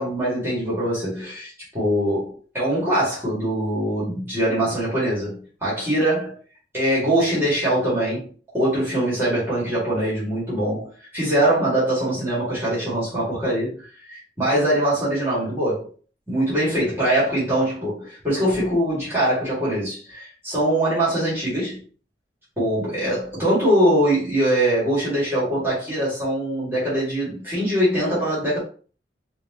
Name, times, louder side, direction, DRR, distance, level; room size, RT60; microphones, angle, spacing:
voice 1, 0.0-6.3 6.7-8.3 8.5-15.9 16.3-21.8 22.6-28.6, right 1 dB, 15° right, -9 dB, 2.1 m, -22 dB
5.0 x 2.7 x 3.0 m, 0.40 s
head